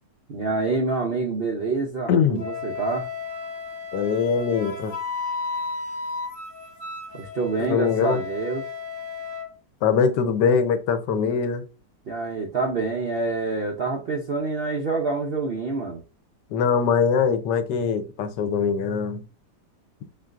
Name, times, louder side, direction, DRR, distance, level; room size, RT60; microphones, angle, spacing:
voice 1, 0.3-3.1 7.1-8.7 12.1-16.0, right 3 dB, 65° right, 0.5 m, -27 dB
voice 2, 2.1-2.4 3.9-4.9 7.6-8.2 9.8-11.6 16.5-19.2, left 6 dB, 80° left, 1.3 m, -22 dB
Wind instrument woodwind instrument, 2.4-9.5, left 4 dB, 65° left, 1.7 m, -33 dB
4.4 x 3.8 x 2.4 m
omnidirectional pair, 1.8 m